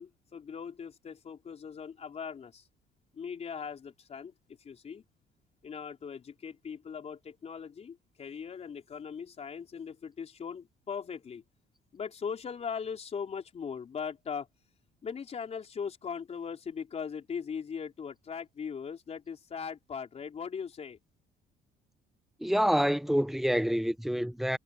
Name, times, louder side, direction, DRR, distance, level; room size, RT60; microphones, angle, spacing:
voice 1, 0.0-2.6 3.1-4.3 4.6-5.0 5.6-11.4 11.9-14.5 15.0-21.0, left 6 dB, 40° left, 4.8 m, -39 dB
voice 2, 22.4-24.6, equal, ahead, 0.9 m, -27 dB
cardioid pair, 110°, 17 cm